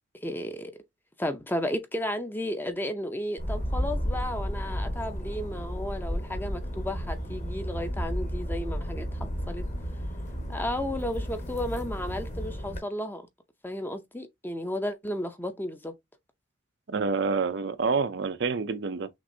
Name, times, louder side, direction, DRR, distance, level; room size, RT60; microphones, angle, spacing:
voice 1, 0.2-0.7 1.2-9.6 10.5-13.2 13.6-15.9, left 1 dB, 10° left, 0.6 m, -33 dB
sound 1, 3.4-12.8, equal, 40° left, 1.3 m, -33 dB
voice 2, 16.9-19.1, right 4 dB, 60° right, 0.5 m, -27 dB
6.0 x 2.6 x 2.7 m
head